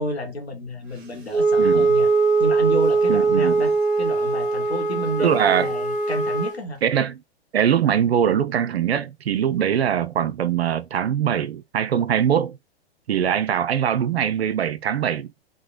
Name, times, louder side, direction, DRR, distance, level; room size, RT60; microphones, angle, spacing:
voice 1, 0.0-2.1 2.4-6.8, right 1 dB, 85° left, 0.9 m, -30 dB
Wind instrument woodwind instrument, 1.3-6.6, right 3 dB, 25° right, 1.0 m, -21 dB
voice 2, 1.6-1.9 3.1-3.6 5.2-5.7 6.8-7.2 7.5-12.6 13.1-15.3, right 9 dB, 75° right, 0.5 m, -22 dB
3.1 x 2.1 x 2.4 m
figure-of-eight pair, 110°, 31 cm